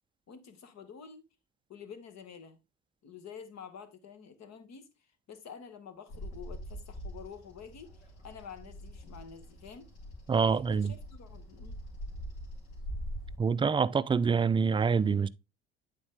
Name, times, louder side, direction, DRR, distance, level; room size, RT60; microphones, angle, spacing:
voice 1, 0.3-1.2 1.7-2.6 3.0-4.9 5.3-9.9 10.5-11.8, left 6 dB, 55° left, 1.4 m, -49 dB
Bird vocalization bird call bird song, 6.1-13.4, equal, 75° left, 2.5 m, -43 dB
voice 2, 10.3-10.9 13.4-15.3, right 5 dB, 15° right, 0.3 m, -26 dB
8.7 x 4.1 x 3.4 m
supercardioid pair, 75°, 33 cm